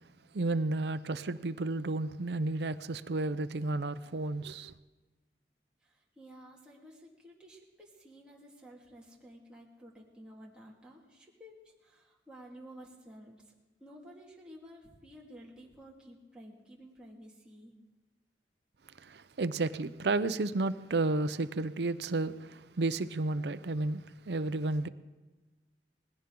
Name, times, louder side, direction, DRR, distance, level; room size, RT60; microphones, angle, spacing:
voice 1, 0.3-4.7 19.0-24.9, right 2 dB, 65° right, 0.6 m, -32 dB
voice 2, 5.8-13.5 13.8-17.7, equal, 5° right, 2.0 m, -53 dB
20.0 x 16.0 x 3.8 m
head